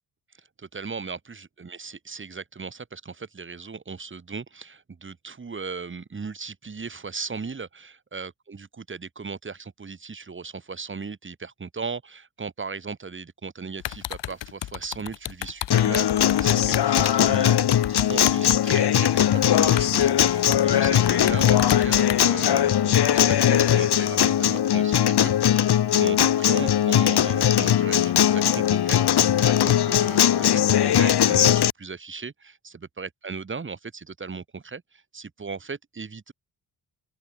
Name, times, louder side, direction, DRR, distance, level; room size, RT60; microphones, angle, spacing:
voice 1, 0.6-36.3, right 4 dB, 30° right, 3.0 m, -37 dB
sound 1, 13.8-18.7 19.1-19.2 19.6-22.2, left 12 dB, 85° left, 1.6 m, -33 dB
Acoustic guitar, 15.7-31.7, left 10 dB, 65° left, 1.6 m, -20 dB
open air
wide cardioid pair, 170°, 42 cm